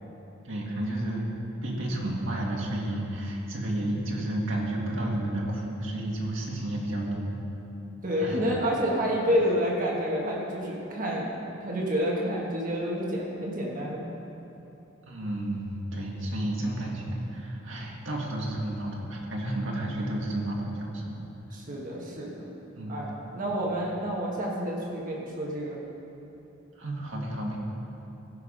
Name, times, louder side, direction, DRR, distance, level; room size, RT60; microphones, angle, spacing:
voice 1, 0.4-1.2 1.6-7.4 8.2-8.4 15.1-21.1 22.8-23.0 26.8-27.6, right 1 dB, 70° right, -2 dB, 1.8 m, -31 dB
voice 2, 8.0-14.1 21.5-22.5 22.9-25.8, equal, 45° right, -3 dB, 1.3 m, -29 dB
15.5 x 5.8 x 5.1 m, 3.0 s
head